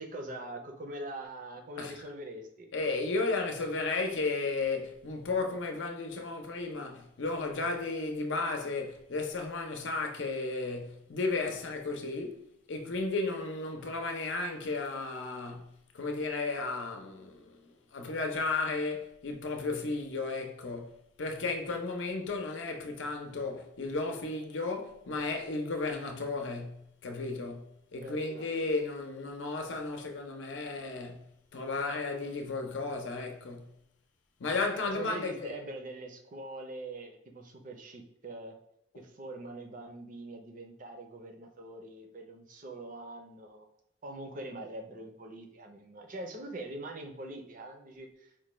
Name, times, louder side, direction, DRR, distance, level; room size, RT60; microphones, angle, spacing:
voice 1, 0.0-2.7 28.0-28.5 34.9-38.5 38.9-43.7 44.0-48.3, right 2 dB, 45° right, 0.5 m, -43 dB
voice 2, 2.7-17.6 17.9-33.7 34.4-35.5, left 3 dB, 80° left, 0.6 m, -34 dB
4.5 x 2.2 x 3.0 m
head